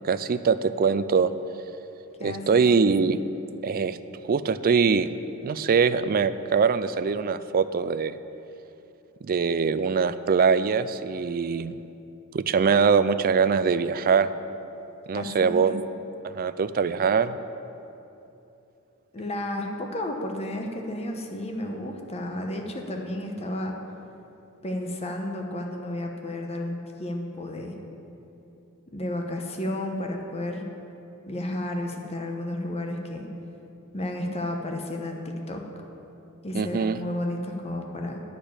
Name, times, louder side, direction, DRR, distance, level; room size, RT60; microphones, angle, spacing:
voice 1, 0.0-1.3 2.2-3.2 3.6-4.0 4.3-5.1 5.4-8.2 9.2-11.8 12.3-14.3 15.1-15.8 16.2-17.4 36.5-37.0, right 5 dB, 40° right, 13 dB, 0.4 m, -23 dB
voice 2, 2.2-2.6 15.1-15.7 19.1-23.7 24.6-27.8 28.9-30.6 31.3-33.3 33.9-35.6 36.4-38.2, left 1 dB, 30° left, 2 dB, 1.0 m, -32 dB
10.0 x 6.7 x 8.8 m, 2.9 s
head